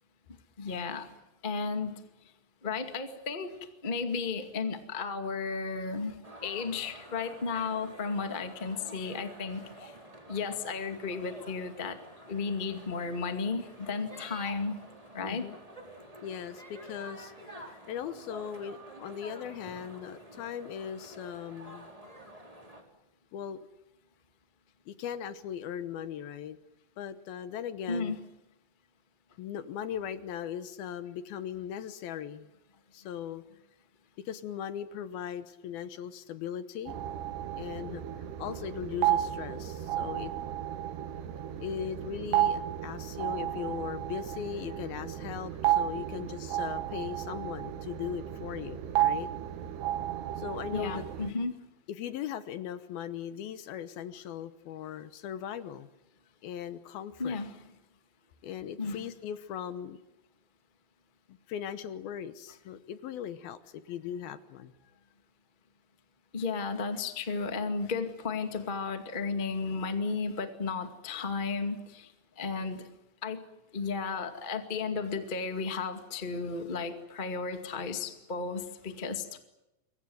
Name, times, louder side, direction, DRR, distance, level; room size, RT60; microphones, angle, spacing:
voice 1, 0.6-1.1 1.4-1.9 2.6-9.9 10.3-12.0 12.3-14.7 15.1-15.5 27.9-28.2 50.7-51.5 57.2-57.6 58.8-59.0 66.3-72.1 72.4-72.9 73.2-73.4 73.7-79.4, left 4 dB, 25° left, 7 dB, 1.1 m, -34 dB
sound 1, 6.2-22.8, right 1 dB, 10° right, 3.7 m, -49 dB
voice 2, 15.2-15.6 16.2-21.9 23.3-23.6 24.9-26.6 27.0-28.2 29.4-32.5 32.9-33.4 34.3-36.9 37.6-40.3 41.6-49.3 50.4-51.0 51.9-55.9 56.4-57.4 58.4-60.0 61.3-64.7, left 9 dB, 70° left, 12 dB, 2.7 m, -39 dB
sound 2, 36.9-51.3, right 12 dB, 80° right, 3.3 m, -33 dB
27.0 x 23.5 x 7.8 m, 0.95 s
omnidirectional pair, 4.8 m